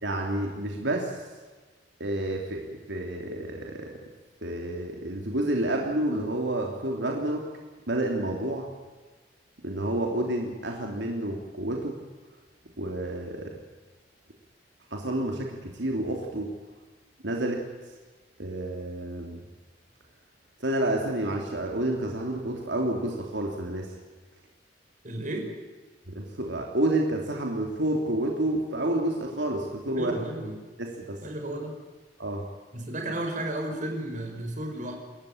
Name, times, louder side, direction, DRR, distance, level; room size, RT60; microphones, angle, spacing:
voice 1, 0.0-1.2 2.0-4.0 4.4-7.4 7.9-8.7 9.6-12.0 12.8-13.6 14.9-16.5 17.2-17.6 18.4-19.4 20.6-23.9 26.1-30.1 30.8-31.2 32.2-32.4, right 1 dB, 80° right, 1 dB, 3.2 m, -29 dB
voice 2, 25.0-25.5 30.0-30.6 31.2-31.8 32.7-34.9, right 1 dB, 45° right, 3 dB, 5.8 m, -33 dB
28.0 x 14.5 x 8.6 m, 1.3 s
head